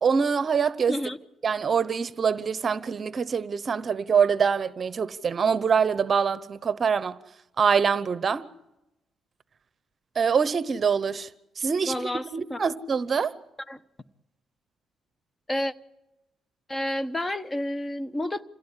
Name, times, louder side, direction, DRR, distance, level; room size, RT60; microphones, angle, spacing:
voice 1, 0.0-1.0 1.4-7.2 7.6-8.5 10.2-11.3 11.6-11.9 12.3-13.3, right 6 dB, 45° right, 0.9 m, -24 dB
voice 2, 0.9-1.2 11.8-12.7 13.7-13.8 15.5-15.7 16.7-18.4, left 1 dB, 20° left, 1.1 m, -30 dB
27.0 x 17.0 x 9.9 m
cardioid pair, 90°, 0 cm